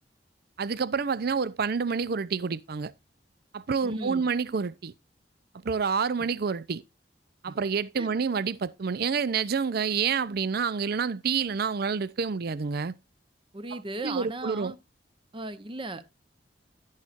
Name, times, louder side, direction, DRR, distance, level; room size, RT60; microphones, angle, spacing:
voice 1, 0.6-2.9 3.5-4.9 5.6-6.8 7.4-13.0 13.7-14.7, right 5 dB, 60° right, 0.5 m, -28 dB
voice 2, 3.8-4.2 7.5-7.6 8.0-8.1 13.5-14.8 15.3-16.0, right 2 dB, 30° right, 0.8 m, -37 dB
11.0 x 10.5 x 2.5 m
head